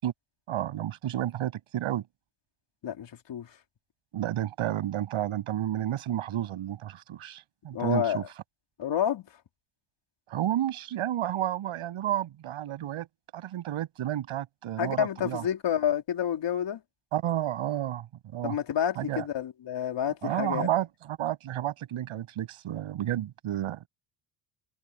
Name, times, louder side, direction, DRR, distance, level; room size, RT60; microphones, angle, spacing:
voice 1, 0.5-2.0 4.1-8.2 10.3-13.1 13.3-15.4 17.1-18.1 18.3-18.6 19.0-19.3 20.2-23.9, right 12 dB, 80° right, 7.4 m, -31 dB
voice 2, 2.8-3.5 7.7-8.3 8.8-9.3 14.8-16.8 18.4-20.7, left 9 dB, 60° left, 4.0 m, -29 dB
cardioid pair, 115°, 49 cm